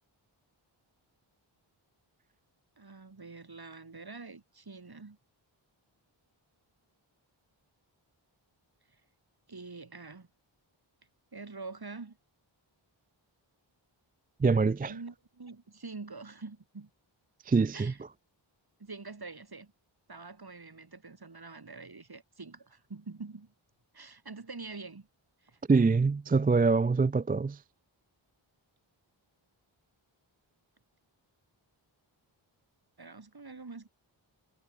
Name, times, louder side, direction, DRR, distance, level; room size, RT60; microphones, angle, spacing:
voice 1, 2.8-5.2 9.5-10.3 11.3-12.2 14.9-16.9 17.7-18.0 18.8-19.7 20.1-23.5 23.9-25.1 25.4-25.6 33.0-33.9, right 3 dB, 50° right, 3.6 m, -45 dB
voice 2, 14.4-14.9 17.4-17.9 25.7-27.6, right 4 dB, 20° right, 0.3 m, -24 dB
wide cardioid pair, 75°, 48 cm